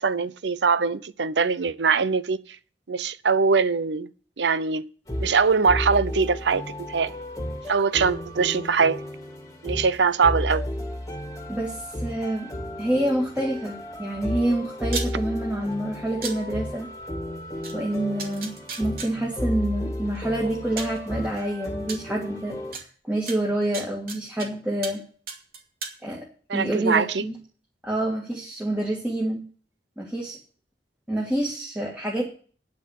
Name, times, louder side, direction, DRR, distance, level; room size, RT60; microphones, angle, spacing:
voice 1, 0.0-2.4 2.9-4.1 4.4-4.8 5.2-6.6 6.9-7.1 7.7-9.0 9.6-10.6 26.5-27.2, right 5 dB, 75° right, 0.6 m, -22 dB
sound 1, 5.1-22.7, left 1 dB, 20° left, 1.8 m, -33 dB
voice 2, 11.5-12.5 12.8-16.9 17.7-25.0 26.0-26.3 26.5-27.4 27.8-29.5 30.0-30.4 31.1-32.2, right 1 dB, 10° right, 2.1 m, -27 dB
sound 2, 14.9-15.1 16.2-16.3 17.6-17.7 18.2-19.1 20.2-20.3 20.8-21.0 21.9-22.0 22.7-22.8 23.3-24.5 24.8-25.0 25.3-25.9, right 5 dB, 55° right, 2.6 m, -33 dB
9.8 x 7.4 x 8.2 m
head